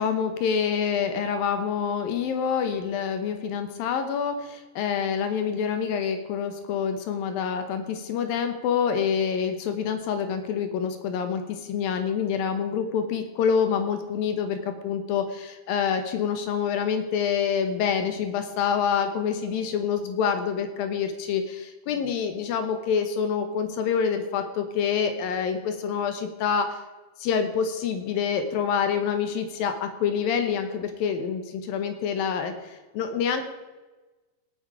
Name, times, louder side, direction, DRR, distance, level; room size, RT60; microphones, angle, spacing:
voice 1, 0.0-26.8 27.2-33.5, left 7 dB, 70° left, 7 dB, 2.6 m, -27 dB
18.5 x 9.0 x 4.9 m, 1.2 s
omnidirectional pair, 4.7 m